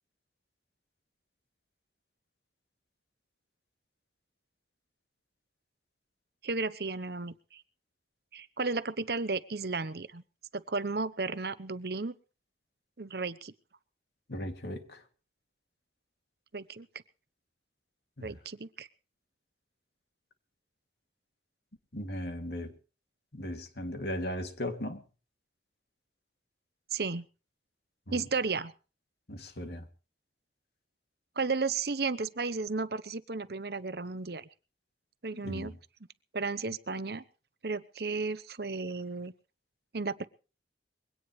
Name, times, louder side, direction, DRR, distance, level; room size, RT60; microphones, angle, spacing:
voice 1, 6.4-7.6 8.3-10.2 10.5-12.1 13.0-13.5 16.5-16.9 18.2-18.9 26.9-27.2 28.1-28.7 31.4-34.5 35.2-35.8 36.3-37.2 37.6-39.3 39.9-40.3, right 4 dB, 60° right, 0.9 m, -33 dB
voice 2, 14.3-15.0 18.2-18.3 21.9-22.7 23.3-25.0 28.1-28.2 29.3-29.9 35.3-35.8, left 1 dB, 65° left, 2.5 m, -37 dB
22.5 x 17.5 x 3.2 m
head